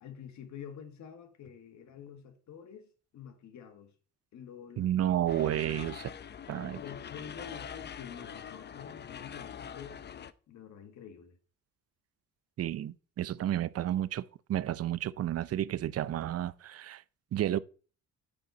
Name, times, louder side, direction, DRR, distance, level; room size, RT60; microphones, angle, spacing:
voice 1, 0.0-3.9 4.3-4.9 6.7-10.0 10.5-11.4, left 8 dB, 65° left, 1.6 m, -48 dB
voice 2, 4.8-6.1 6.5-6.8 12.6-17.0 17.3-17.6, right 12 dB, 55° right, 0.5 m, -31 dB
sound 1, 5.3-10.3, left 8 dB, 35° left, 0.6 m, -44 dB
8.9 x 4.0 x 7.0 m
cardioid pair, 90°, 30 cm